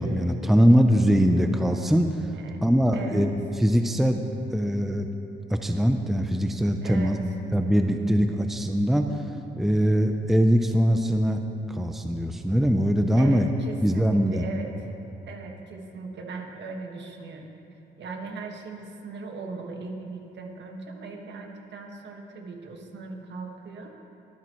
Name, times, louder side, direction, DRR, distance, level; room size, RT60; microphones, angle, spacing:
voice 1, 0.0-2.3 2.6-4.2 4.5-5.1 5.5-7.2 7.5-9.3 9.6-11.4 11.7-13.5 13.8-14.4, equal, ahead, 5 dB, 0.6 m, -22 dB
voice 2, 6.8-7.2 13.2-14.7 15.3-17.5 18.0-23.9, right 4 dB, 65° right, 2 dB, 1.7 m, -38 dB
23.0 x 9.2 x 3.1 m, 2.8 s
cardioid pair, 90°, 20 cm